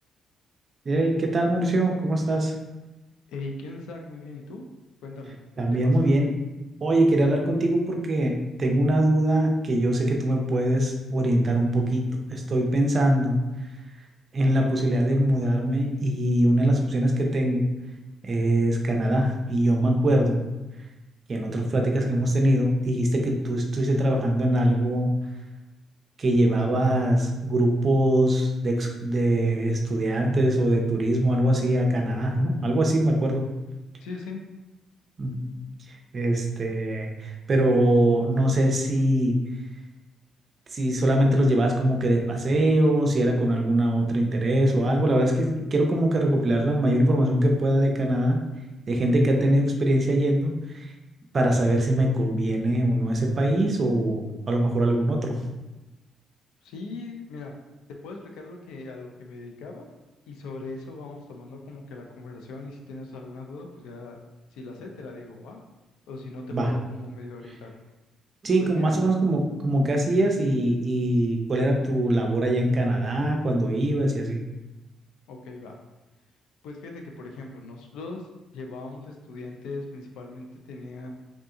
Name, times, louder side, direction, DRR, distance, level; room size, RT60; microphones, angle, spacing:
voice 1, 0.8-2.5 5.6-6.3 6.8-13.4 14.3-17.6 18.2-20.4 21.3-25.1 26.2-33.5 35.2-35.3 36.1-39.4 40.7-48.4 48.9-50.9 51.3-55.3 66.5-66.7 68.4-74.4, right 1 dB, 40° right, 1 dB, 0.6 m, -22 dB
voice 2, 3.3-4.6 5.0-5.4 5.8-6.1 34.0-34.4 56.6-57.5 57.9-59.9 60.3-64.2 64.5-65.6 66.1-67.7 68.6-68.9 75.3-75.8 76.6-78.3 78.5-81.1, left 3 dB, 90° left, 2 dB, 0.5 m, -39 dB
3.6 x 2.7 x 2.4 m, 1.1 s
cardioid pair, 90°, 0 cm